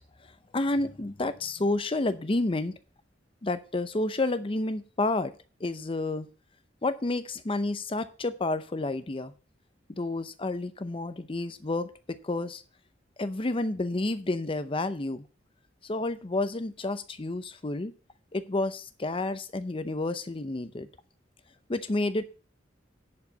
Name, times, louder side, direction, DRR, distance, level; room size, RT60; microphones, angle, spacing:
voice 1, 0.5-2.7 3.4-5.3 5.6-6.3 6.8-9.3 9.9-12.6 13.2-15.2 15.8-17.9 18.3-20.9 21.7-22.2, left 2 dB, 30° left, 12 dB, 0.6 m, -30 dB
10.5 x 5.0 x 6.5 m, 0.36 s
head